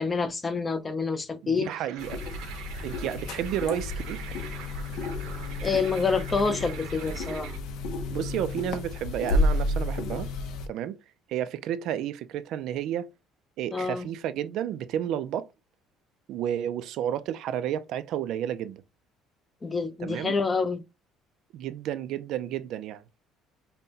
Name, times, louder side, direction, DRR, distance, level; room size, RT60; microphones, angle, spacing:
voice 1, 0.0-1.7 5.6-7.5 13.7-14.1 19.6-20.8, left 4 dB, 20° left, 0.5 m, -27 dB
voice 2, 1.4-2.2 2.8-4.4 8.1-10.3 10.7-11.0 11.3-13.1 13.6-15.5 16.3-18.8 20.0-20.3 21.5-23.0, right 10 dB, 65° right, 0.4 m, -31 dB
sound 1, 1.6-7.6, right 10 dB, 85° right, 0.8 m, -44 dB
sound 2, 2.0-10.7, left 2 dB, 70° left, 0.7 m, -31 dB
5.4 x 2.2 x 2.8 m
cardioid pair, 140°, 0 cm